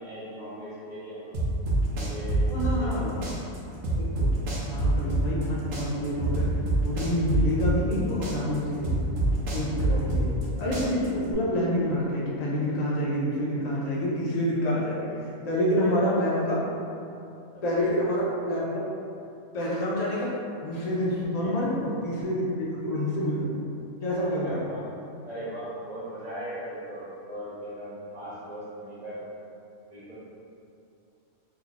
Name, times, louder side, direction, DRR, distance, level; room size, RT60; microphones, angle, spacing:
voice 1, 0.0-1.4 1.9-3.2 9.9-10.3 15.7-16.2 17.5-17.9 21.2-21.6 24.4-24.8 25.2-29.2 29.9-30.1, equal, 40° right, -10 dB, 0.6 m, -39 dB
sound 1, 1.3-3.0 3.2-5.5 5.7-8.0 8.2-10.5 10.7-11.3, right 2 dB, 70° right, 1.0 m, -26 dB
voice 2, 2.5-3.1 4.0-4.3 4.6-6.5 6.8-9.2 9.5-16.6 17.6-18.8 19.5-20.4 20.6-23.5 24.0-24.6, equal, 70° left, -6 dB, 0.3 m, -27 dB
2.9 x 2.3 x 3.8 m, 2.7 s
omnidirectional pair, 1.4 m